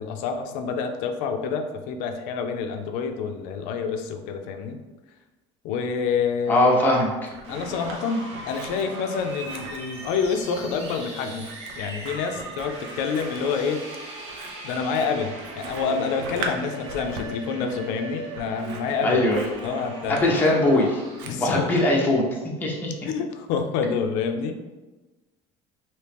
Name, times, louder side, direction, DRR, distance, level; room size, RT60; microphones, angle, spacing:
voice 1, 0.0-4.8 5.6-6.7 7.5-11.5 11.8-13.8 14.6-19.2 19.6-20.2 21.2-21.9 23.0-24.5, left 5 dB, 70° left, 5 dB, 0.4 m, -28 dB
Scissors, 6.4-8.0 8.3-22.0, right 3 dB, 80° right, 0.5 m, -41 dB
voice 2, 6.5-7.3 19.0-19.4 20.1-21.0 21.4-22.9, left 1 dB, 15° left, -2 dB, 0.6 m, -21 dB
sound 1, 7.4-21.6, right 1 dB, 45° right, 0.8 m, -39 dB
3.0 x 2.8 x 3.4 m, 1.2 s
cardioid pair, 140°, 13 cm